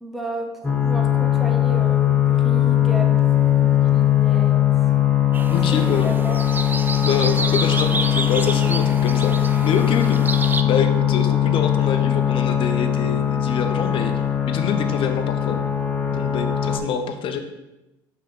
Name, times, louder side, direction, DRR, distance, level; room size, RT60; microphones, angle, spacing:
voice 1, 0.0-4.7 5.7-6.4, right 1 dB, ahead, 2 dB, 0.9 m, -33 dB
sound 1, 0.6-16.8, left 10 dB, 15° left, 1.3 m, -20 dB
sound 2, 5.3-10.6, right 3 dB, 20° right, 0.5 m, -29 dB
voice 2, 5.5-6.1 7.0-10.2 10.6-14.1 14.5-15.6 16.1-17.4, left 6 dB, 50° left, 6 dB, 0.9 m, -26 dB
5.5 x 3.8 x 5.5 m, 0.96 s
hypercardioid pair, 75°, 11 cm